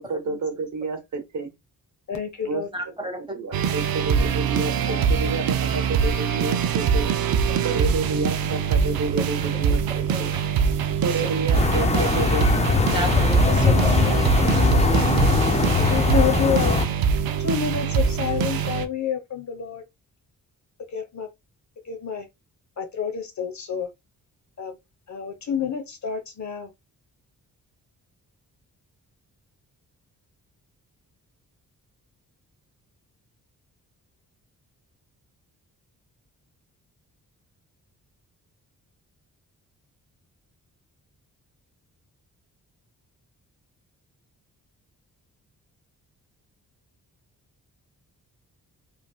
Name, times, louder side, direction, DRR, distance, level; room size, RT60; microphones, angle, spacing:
voice 1, 0.0-1.5 2.5-2.6 3.0-7.1 7.6-10.3 11.0-12.4, right 3 dB, 50° right, 0.9 m, -30 dB
voice 2, 2.1-2.7 4.9-5.5 7.9-8.1 14.4-14.9 15.9-16.8 17.4-19.8 20.9-21.3 21.9-22.3 22.8-23.9 24.6-24.8 25.1-26.7, left 7 dB, 50° left, 1.0 m, -29 dB
voice 3, 2.7-3.2 7.5-7.9 9.2-9.3 9.9-10.3 11.0-11.3 12.8-15.0, right 1 dB, 15° right, 1.2 m, -33 dB
sound 1, 3.5-18.9, right 7 dB, 70° right, 0.5 m, -23 dB
sound 2, 11.5-16.9, left 4 dB, 20° left, 0.5 m, -21 dB
3.1 x 2.6 x 2.3 m
cardioid pair, 65°, 37 cm